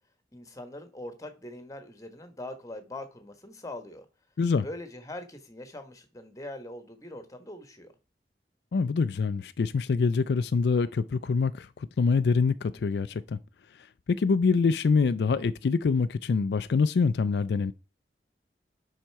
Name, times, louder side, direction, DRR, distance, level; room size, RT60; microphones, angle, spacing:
voice 1, 0.3-4.0 4.6-7.9, left 1 dB, 20° left, 1.3 m, -42 dB
voice 2, 8.7-13.4 13.7-17.7, left 4 dB, 65° left, 0.4 m, -25 dB
9.0 x 5.7 x 4.6 m
head